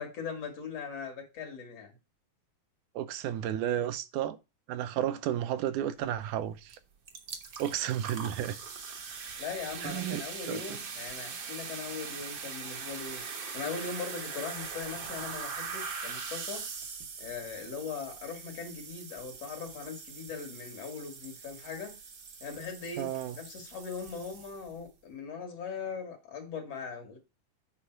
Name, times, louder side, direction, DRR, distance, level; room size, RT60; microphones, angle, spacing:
voice 1, 0.0-1.9 9.2-16.7 17.2-22.0 22.4-27.2, left 5 dB, 55° left, 2.7 m, -40 dB
voice 2, 3.0-4.4 4.7-6.8 7.6-8.6 9.8-10.8 23.0-23.4, right 11 dB, 85° right, 2.2 m, -32 dB
sound 1, 6.7-6.8 7.1-24.8, right 5 dB, 55° right, 1.2 m, -42 dB
8.6 x 5.2 x 4.4 m
omnidirectional pair, 3.5 m